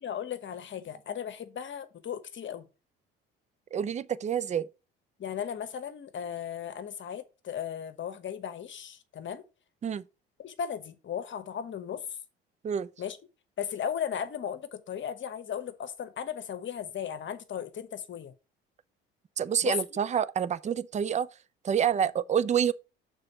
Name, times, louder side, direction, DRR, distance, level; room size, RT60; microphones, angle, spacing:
voice 1, 0.0-2.7 5.2-9.4 10.4-12.0 13.0-13.2 13.6-18.3 19.6-19.7, left 8 dB, 40° left, 1.1 m, -36 dB
voice 2, 3.7-4.7 9.8-10.0 12.6-12.9 19.4-21.3 21.6-22.7, right 8 dB, 25° right, 0.4 m, -27 dB
6.8 x 3.9 x 5.3 m
hypercardioid pair, 60°, 30 cm